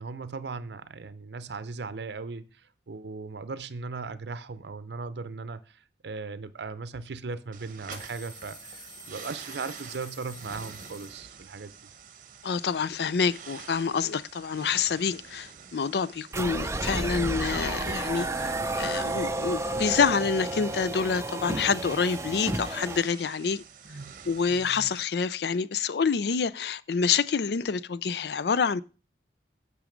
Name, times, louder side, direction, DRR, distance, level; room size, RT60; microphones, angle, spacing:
voice 1, 0.0-11.7, right 4 dB, 75° right, 0.6 m, -38 dB
sound 1, 6.7-6.8 7.8-11.6, left 1 dB, 25° left, 1.8 m, -48 dB
sound 2, 7.5-25.0, right 6 dB, 50° right, 0.9 m, -47 dB
voice 2, 12.4-23.6 24.3-28.8, left 5 dB, 65° left, 0.4 m, -27 dB
sound 3, 16.3-23.0, right 2 dB, 15° right, 0.5 m, -31 dB
9.1 x 6.2 x 5.1 m
head